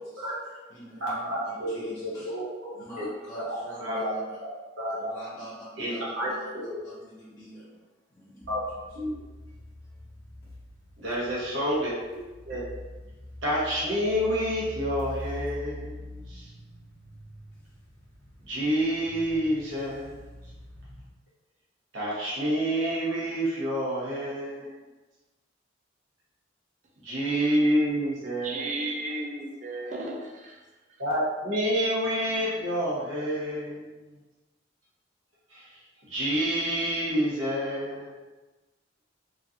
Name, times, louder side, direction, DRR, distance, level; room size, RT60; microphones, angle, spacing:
voice 1, 0.0-2.3 2.7-4.4 4.9-8.8 9.8-10.0, equal, 20° left, -11 dB, 0.6 m, -46 dB
voice 2, 1.0-1.9 2.3-2.5 3.0-3.1 3.5-4.1 4.8-5.1 5.8-6.8 8.5-8.6 8.9-9.2 11.0-12.2 12.5-12.6 13.4-16.5 18.5-20.2 21.9-24.7 27.0-28.7 31.0-33.9 35.5-35.8 36.1-38.1, equal, 90° right, -7 dB, 1.0 m, -28 dB
sound 1, 8.4-21.1, left 1 dB, 55° left, 0.9 m, -44 dB
voice 3, 28.4-30.7, right 2 dB, 40° right, 0 dB, 0.4 m, -34 dB
3.1 x 2.5 x 2.7 m, 1.2 s
head